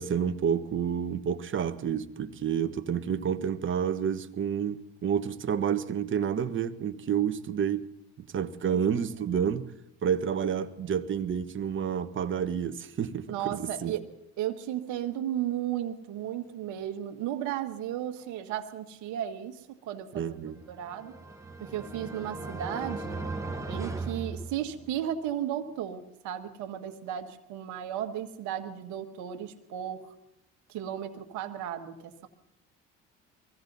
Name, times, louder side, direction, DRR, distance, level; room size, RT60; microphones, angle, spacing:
voice 1, 0.0-7.9 8.2-9.7 10.0-13.9 20.1-20.6, right 8 dB, 40° right, 1.2 m, -29 dB
voice 2, 13.3-14.1 14.4-20.4 20.7-21.1 21.6-23.2 23.7-30.1 30.7-32.3, right 11 dB, 70° right, 1.7 m, -35 dB
sound 1, 20.7-25.1, right 3 dB, 10° right, 1.8 m, -37 dB
23.0 x 15.5 x 4.1 m
hypercardioid pair, 70°, 30 cm